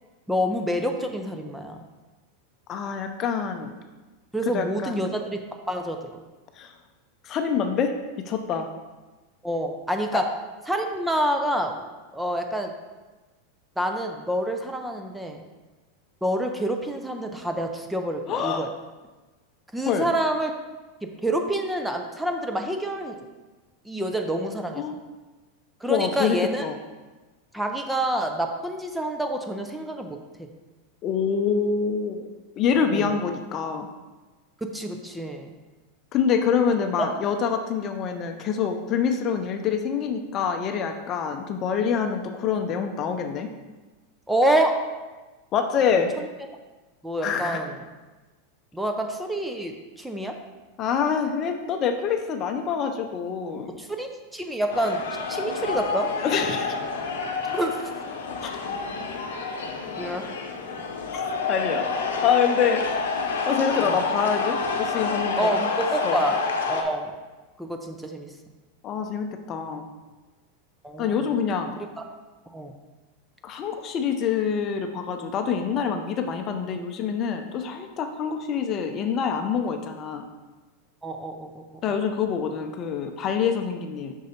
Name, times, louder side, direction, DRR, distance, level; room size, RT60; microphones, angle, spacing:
voice 1, 0.3-1.8 4.3-5.4 5.7-6.0 9.4-10.3 10.7-11.8 12.1-12.7 13.8-15.4 16.2-18.7 19.7-20.5 21.2-23.1 23.9-24.8 25.8-26.6 27.5-30.5 32.7-33.2 34.6-35.5 37.0-37.1 44.3-44.8 46.2-46.3 47.0-47.8 48.7-50.4 53.8-55.0 55.3-56.1 57.5-57.8 60.0-60.2 63.8-64.0 65.4-66.4 66.7-67.1 67.6-68.3 70.8-71.2 72.0-72.1 72.5-72.7 81.0-81.6, right 1 dB, 5° right, 4 dB, 0.6 m, -27 dB
voice 2, 2.7-3.7 4.5-5.0 6.6-6.7 7.2-8.7 10.1-10.2 18.3-18.6 19.9-20.1 24.8-24.9 25.9-26.8 31.0-32.3 32.6-33.9 36.1-43.5 45.5-46.1 47.2-47.6 50.8-53.7 56.2-56.8 58.4-58.5 61.5-61.9 62.2-62.8 63.5-65.7 66.0-66.2 68.8-69.9 71.0-71.7 73.4-80.2 81.8-84.1, left 6 dB, 40° left, 6 dB, 0.6 m, -26 dB
sound 1, 54.7-66.8, left 4 dB, 85° left, 0.8 m, -28 dB
5.4 x 3.9 x 5.1 m, 1.2 s
hypercardioid pair, 115°, 0 cm